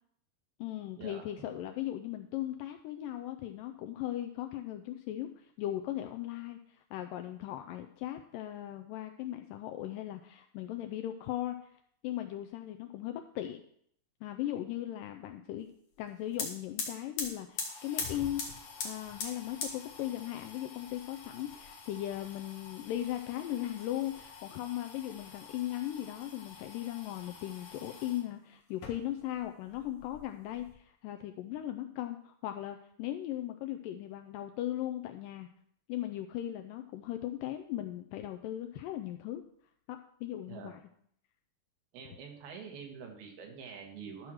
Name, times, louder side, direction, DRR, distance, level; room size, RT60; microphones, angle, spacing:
voice 1, 0.6-13.6 14.2-15.7 16.0-18.5 18.8-35.5 35.9-39.4 39.9-40.8, left 13 dB, 85° left, 6 dB, 1.9 m, -38 dB
sound 1, 16.0-16.1 16.3-28.2 28.7-29.5 29.7-30.7, left 5 dB, 55° left, 2.5 m, -43 dB
voice 2, 41.9-44.3, right 6 dB, 80° right, 2 dB, 3.5 m, -46 dB
12.5 x 4.5 x 6.3 m, 0.66 s
omnidirectional pair, 4.3 m